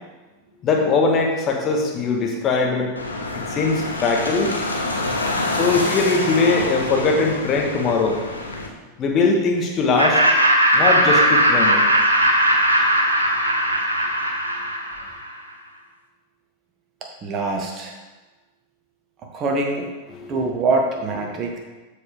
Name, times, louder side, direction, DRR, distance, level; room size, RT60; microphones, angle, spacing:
voice 1, 0.6-2.9 3.3-4.5 5.5-8.2 9.0-10.2 10.7-11.9 20.2-20.3, left 4 dB, 30° left, 1 dB, 1.7 m, -20 dB
sound 1, 3.0-8.7, left 2 dB, 80° left, 1.2 m, -27 dB
Laughter, 10.0-15.3, equal, 80° right, 1.0 m, -18 dB
voice 2, 17.0-18.0 19.3-19.9 20.3-21.6, right 3 dB, 30° right, 2 dB, 1.6 m, -24 dB
12.5 x 5.2 x 3.6 m, 1.2 s
figure-of-eight pair, 90°, 0 cm